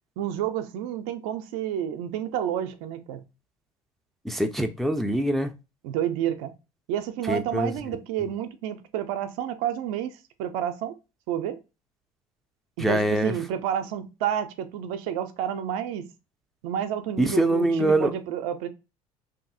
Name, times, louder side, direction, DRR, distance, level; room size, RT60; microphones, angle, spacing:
voice 1, 0.2-3.3 5.8-6.5 6.9-11.0 11.3-11.6 12.8-16.1 16.6-18.7, right 10 dB, 65° right, 0.5 m, -30 dB
voice 2, 4.2-5.5 7.3-7.7 12.8-13.3 17.2-18.1, right 1 dB, ahead, 0.4 m, -23 dB
2.7 x 2.6 x 2.3 m
hypercardioid pair, 65°, 19 cm